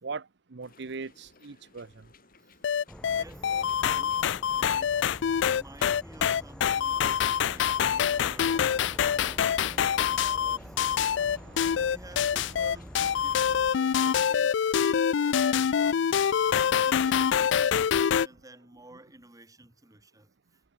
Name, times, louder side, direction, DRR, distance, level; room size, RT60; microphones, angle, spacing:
voice 1, 0.0-2.1 7.3-11.9 12.4-12.6 13.3-17.0, right 4 dB, 65° right, 0.8 m, -46 dB
sound 1, 0.6-14.3, left 4 dB, 50° left, 3.9 m, -60 dB
sound 2, 2.6-18.3, left 8 dB, 70° left, 0.4 m, -25 dB
Insect / Frog, 2.9-13.7, equal, 5° left, 2.3 m, -46 dB
voice 2, 3.1-4.3 4.6-7.1 7.4-8.6 9.0-11.1 11.7-16.2 16.7-20.6, right 1 dB, 20° right, 3.6 m, -52 dB
head